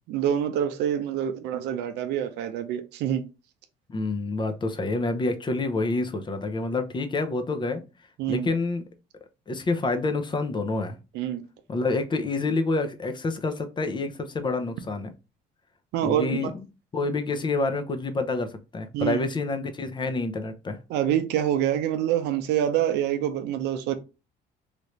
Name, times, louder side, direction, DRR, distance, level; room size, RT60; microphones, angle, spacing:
voice 1, 0.1-3.2 8.2-8.5 11.1-11.4 15.9-16.3 18.9-19.2 20.9-23.9, right 10 dB, 85° right, 0.6 m, -26 dB
voice 2, 3.9-7.8 8.3-8.9 9.5-11.0 11.7-15.1 16.0-16.6 16.9-20.8, left 3 dB, 25° left, 0.6 m, -28 dB
3.2 x 2.5 x 3.0 m
cardioid pair, 110°, 17 cm